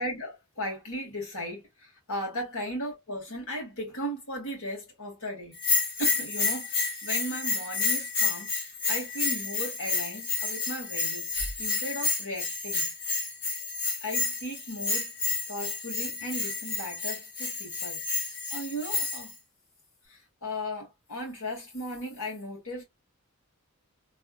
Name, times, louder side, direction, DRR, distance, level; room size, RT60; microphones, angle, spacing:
voice 1, 0.0-5.6 6.0-8.5 8.9-12.9 14.0-15.1 15.5-18.1 18.5-19.3 20.1-22.8, equal, 70° left, 2.4 m, -36 dB
Bell, 5.6-19.3, left 4 dB, 45° left, 2.2 m, -30 dB
3.5 x 3.4 x 2.5 m
head